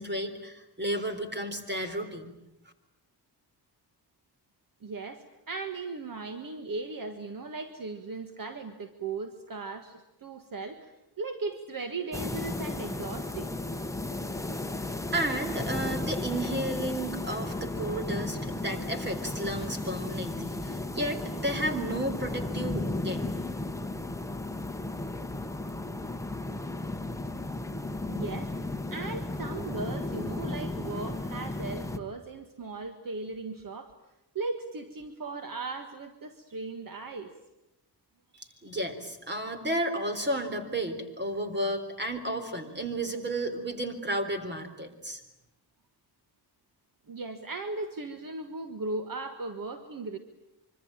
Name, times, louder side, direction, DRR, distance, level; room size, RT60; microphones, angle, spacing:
voice 1, 0.0-2.3 15.1-23.3 38.3-45.2, right 1 dB, 25° right, 7 dB, 3.8 m, -32 dB
voice 2, 4.8-10.9 11.2-13.5 28.1-28.5 28.9-33.9 34.4-37.3 47.1-50.2, right 3 dB, 55° right, 8 dB, 1.7 m, -37 dB
sound 1, 12.1-32.0, left 2 dB, 10° left, 1.2 m, -34 dB
25.5 x 24.5 x 8.9 m, 0.92 s
wide cardioid pair, 170°, 39 cm